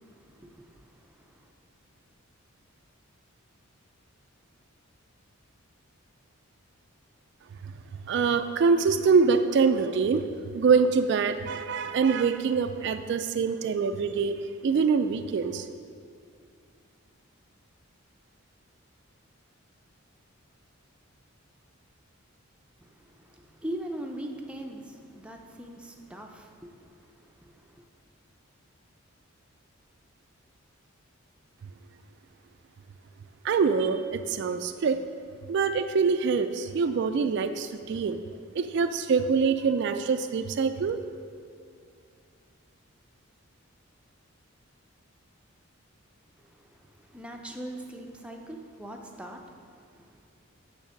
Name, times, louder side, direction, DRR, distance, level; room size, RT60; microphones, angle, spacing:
voice 1, 0.0-1.5 22.8-27.8 46.4-50.2, right 1 dB, 5° right, 2 dB, 0.5 m, -42 dB
voice 2, 8.1-15.7 33.4-35.0 35.5-38.2 38.5-41.0, right 5 dB, 55° right, 9 dB, 0.3 m, -25 dB
10.0 x 3.5 x 6.4 m, 2.3 s
head